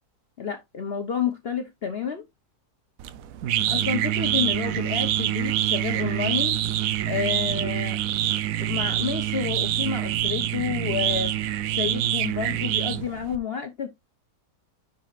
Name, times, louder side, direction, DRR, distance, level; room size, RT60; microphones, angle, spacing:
voice 1, 0.4-2.2 3.7-6.6 7.1-8.0 8.6-11.3 11.7-13.9, left 7 dB, 45° left, 1.0 m, -30 dB
sound 1, 3.0-13.4, right 12 dB, 70° right, 1.0 m, -26 dB
10.5 x 4.0 x 2.4 m
omnidirectional pair, 1.6 m